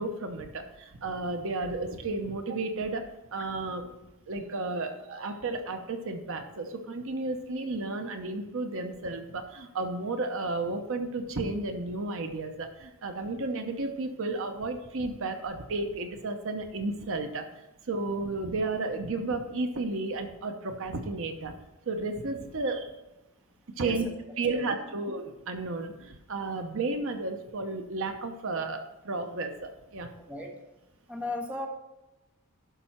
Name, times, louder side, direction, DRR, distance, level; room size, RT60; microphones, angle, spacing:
voice 1, 0.0-3.0 3.3-3.9 4.3-21.5 21.9-22.9 23.8-24.1 24.4-30.1, right 3 dB, 60° right, 6 dB, 0.8 m, -33 dB
voice 2, 31.1-31.7, left 2 dB, 5° right, 1 dB, 1.1 m, -35 dB
11.5 x 5.5 x 4.4 m, 0.95 s
head